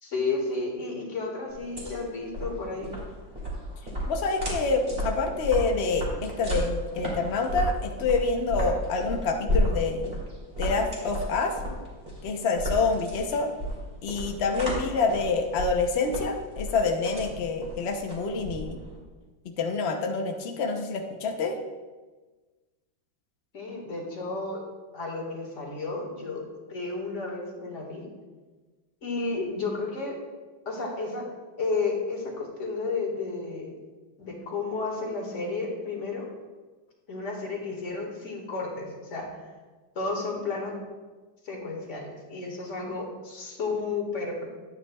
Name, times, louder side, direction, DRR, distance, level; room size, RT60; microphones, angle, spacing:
voice 1, 0.0-2.9 23.5-24.6 24.9-26.4 26.7-28.1 29.0-30.2 30.7-31.3 31.6-33.7 34.2-36.3 37.1-39.3 40.0-40.7 41.4-44.5, left 3 dB, 40° left, -1 dB, 1.9 m, -32 dB
sound 1, 1.5-19.0, equal, 25° right, 2.5 m, -33 dB
voice 2, 4.1-10.2 10.6-11.5 12.2-13.5 14.0-18.8 19.4-21.6, left 4 dB, 85° left, 3 dB, 0.5 m, -27 dB
11.5 x 8.9 x 2.3 m, 1.3 s
omnidirectional pair, 2.2 m